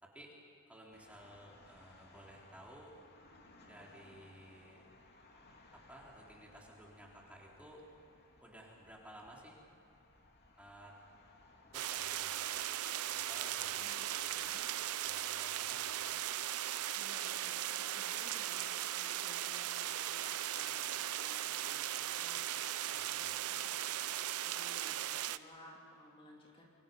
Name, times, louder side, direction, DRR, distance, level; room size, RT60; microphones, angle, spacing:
voice 1, 0.0-0.3 0.7-3.0 3.6-4.8 5.7-7.9 8.4-9.6 10.6-10.9 11.7-12.6 13.1-13.9 15.0-16.2 22.9-23.4, right 1 dB, 5° right, -3 dB, 3.7 m, -56 dB
sound 1, 0.9-14.6, left 2 dB, 50° left, 2.7 m, -63 dB
sound 2, 11.7-25.4, right 12 dB, 75° right, 0.6 m, -38 dB
voice 2, 13.7-14.7 16.9-26.7, left 1 dB, 25° left, -2 dB, 3.3 m, -59 dB
28.5 x 25.0 x 5.5 m, 2.7 s
head